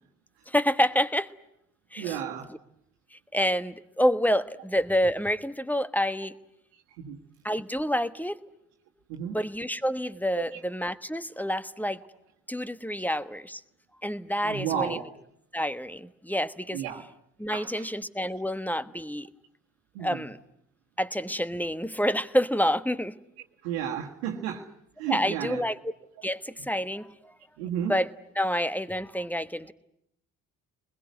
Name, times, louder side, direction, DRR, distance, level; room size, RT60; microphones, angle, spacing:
voice 1, 0.5-1.3 1.9-2.2 3.1-6.4 7.4-8.4 9.2-12.0 12.5-13.6 14.0-15.0 15.5-16.8 17.4-19.3 20.0-20.4 21.0-23.2 25.1-25.8 26.2-27.3 27.8-28.1 28.4-29.7, equal, 5° left, 14 dB, 1.2 m, -28 dB
voice 2, 2.0-2.5 6.7-7.2 9.1-9.4 10.3-10.6 14.4-15.1 16.7-17.0 17.5-17.9 19.9-20.3 23.6-24.7 25.0-25.6 27.6-28.0, right 9 dB, 75° right, -1 dB, 1.7 m, -33 dB
25.0 x 21.0 x 9.5 m, 0.77 s
hypercardioid pair, 50°, 43 cm